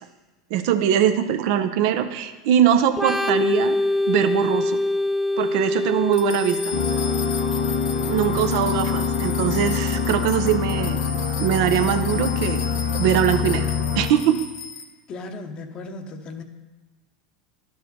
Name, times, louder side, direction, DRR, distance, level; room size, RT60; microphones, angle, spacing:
voice 1, 0.5-3.8 4.1-4.8 5.4-6.7 8.1-11.0 11.4-12.6 12.9-13.7 14.0-14.4, right 9 dB, 65° right, 10 dB, 0.6 m, -22 dB
Organ, 2.9-10.4, left 2 dB, 10° right, 0.5 m, -26 dB
sound 1, 6.1-14.8, left 6 dB, 75° left, 1.0 m, -35 dB
sound 2, 6.7-14.1, left 6 dB, 90° left, 2.0 m, -25 dB
voice 2, 15.1-16.4, left 3 dB, 40° left, 6 dB, 0.8 m, -36 dB
12.0 x 4.7 x 4.2 m, 1.2 s
hypercardioid pair, 90°, 2 cm